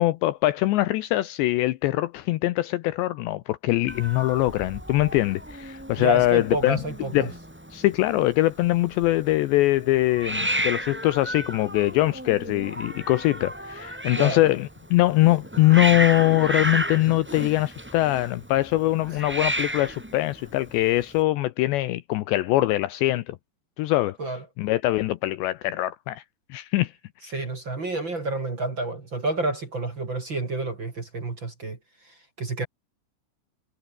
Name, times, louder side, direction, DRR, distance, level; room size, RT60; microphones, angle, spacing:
voice 1, 0.0-6.8 7.1-7.3 7.7-23.4 23.8-24.2 24.6-26.2 26.5-26.9 27.2-27.3, left 17 dB, 75° left, 2.7 m, -22 dB
Hiss, 3.9-21.2, right 1 dB, 5° right, 1.0 m, -33 dB
voice 2, 6.0-7.3 14.1-14.4 24.2-24.4 27.3-31.8 32.0-32.7, right 2 dB, 30° right, 2.8 m, -29 dB
omnidirectional pair, 5.6 m